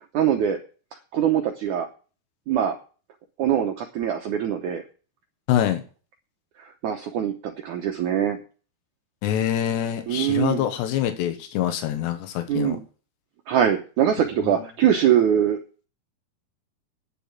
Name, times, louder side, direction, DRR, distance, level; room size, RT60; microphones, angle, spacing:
voice 1, 0.1-0.6 1.1-1.9 2.5-2.8 3.4-4.8 6.6-7.3 7.6-8.4 10.1-10.7 12.5-12.9 13.5-15.6, right 9 dB, 80° right, 5 dB, 1.7 m, -22 dB
voice 2, 5.5-5.8 9.2-12.8 14.4-14.5, left 11 dB, 85° left, 7 dB, 3.5 m, -25 dB
9.9 x 7.0 x 8.7 m, 0.38 s
omnidirectional pair, 4.8 m